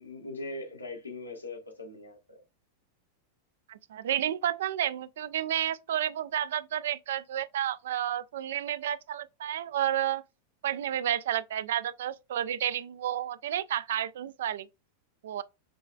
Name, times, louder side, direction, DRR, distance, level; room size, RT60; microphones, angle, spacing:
voice 1, 0.0-2.4, left 2 dB, 80° left, 1.2 m, -41 dB
voice 2, 3.7-10.2 10.6-14.7 15.2-15.4, right 11 dB, 60° right, 0.3 m, -31 dB
6.8 x 3.1 x 2.2 m
figure-of-eight pair, 90°, 0 cm